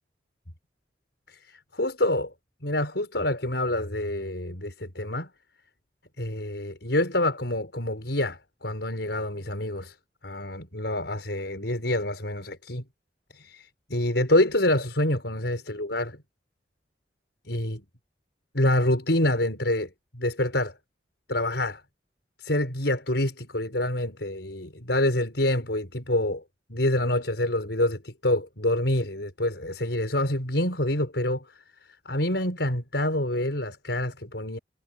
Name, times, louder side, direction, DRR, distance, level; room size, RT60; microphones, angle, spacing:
voice 1, 1.3-2.3 2.6-5.3 6.2-10.0 10.2-12.9 13.3-16.2 17.5-17.8 18.5-20.7 21.3-21.8 22.4-26.4 26.7-31.5 32.1-34.6, left 1 dB, 75° left, 5.7 m, -27 dB
head